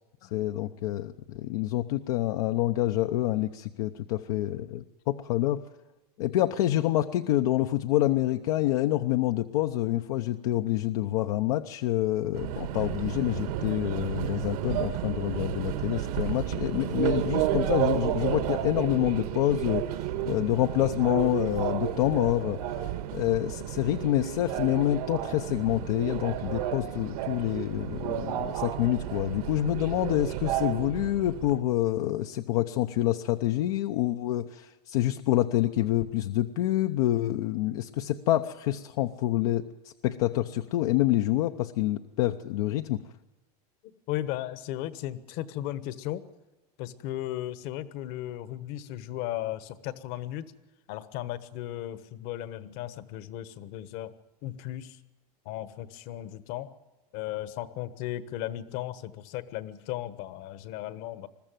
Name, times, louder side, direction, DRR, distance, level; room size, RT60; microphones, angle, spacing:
voice 1, 0.3-5.6 6.2-19.8 20.2-22.6 23.1-43.0, left 14 dB, 65° left, 6 dB, 0.8 m, -27 dB
Subway metro underground, 12.3-31.6, right 12 dB, 70° right, 1.7 m, -32 dB
voice 2, 44.1-46.3 46.8-50.5 50.9-54.1 54.4-55.0 55.4-56.7 57.1-61.3, left 13 dB, 50° left, 14 dB, 1.3 m, -36 dB
21.5 x 13.5 x 9.2 m, 1.1 s
supercardioid pair, 140°, 20 cm